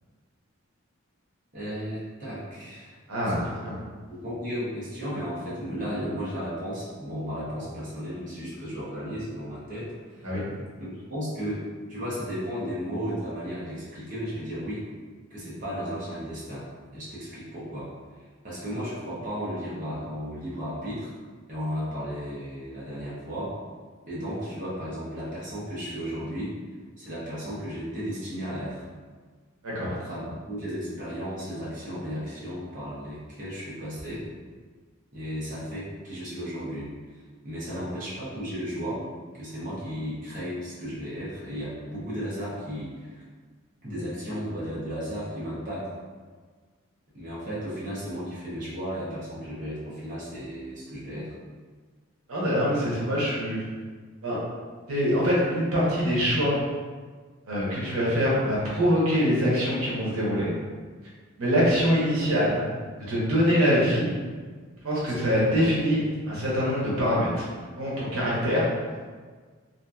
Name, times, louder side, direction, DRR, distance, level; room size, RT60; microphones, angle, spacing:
voice 1, 1.5-2.9 3.4-3.5 4.1-10.3 10.8-11.6 11.9-14.8 15.3-16.7 16.9-17.9 18.4-21.1 21.5-23.6 24.1-26.6 27.0-28.9 29.9-34.2 35.1-36.9 37.4-39.0 39.3-43.2 43.8-45.9 47.1-51.3 65.1-65.6, equal, 35° right, -9 dB, 0.7 m, -34 dB
voice 2, 3.1-3.8 10.2-10.4 29.6-29.9 52.3-53.6 54.2-54.4 54.9-56.6 57.5-60.5 61.4-62.6 63.1-64.1 64.8-67.5 67.8-68.7, equal, 90° right, -6 dB, 0.8 m, -24 dB
2.7 x 2.5 x 2.3 m, 1.5 s
head